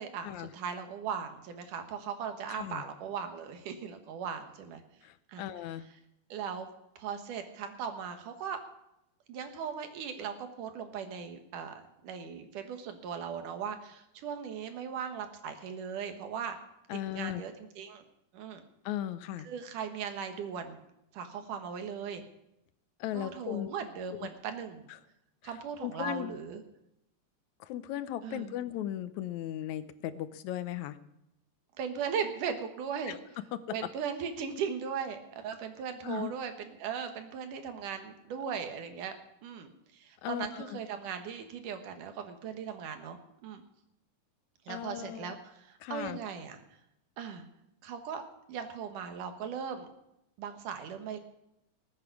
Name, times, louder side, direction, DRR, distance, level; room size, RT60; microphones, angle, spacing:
voice 1, 0.0-4.8 5.3-5.4 6.3-6.7 7.0-8.6 9.3-16.6 16.9-18.0 18.3-18.6 19.5-20.8 21.1-22.2 23.1-24.9 25.4-26.6 28.2-28.5 31.8-33.2 33.7-39.2 39.4-43.6 44.7-46.6 47.2-47.5 47.8-48.2 48.5-49.9 50.4-51.2, right 7 dB, 85° right, 7 dB, 2.9 m, -38 dB
voice 2, 2.5-2.8 5.0-5.8 16.9-17.4 18.9-19.5 23.0-23.7 24.1-24.3 24.9-25.0 25.4-25.5 25.8-26.3 27.6-31.0 33.1-33.2 33.5-33.8 36.0-36.4 40.2-40.8 44.7-45.3 45.8-46.2, left 12 dB, 75° left, 13 dB, 1.9 m, -37 dB
19.5 x 8.8 x 6.0 m, 0.84 s
omnidirectional pair, 3.6 m